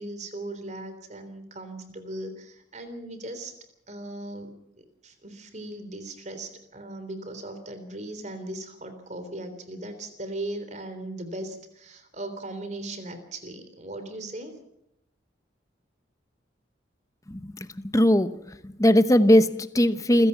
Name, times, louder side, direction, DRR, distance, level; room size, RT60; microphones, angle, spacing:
voice 1, 0.0-3.5 3.9-14.6, right 1 dB, 40° right, 9 dB, 3.6 m, -38 dB
voice 2, 17.9-20.3, equal, 15° left, 12 dB, 0.9 m, -20 dB
28.0 x 16.5 x 5.8 m, 0.79 s
head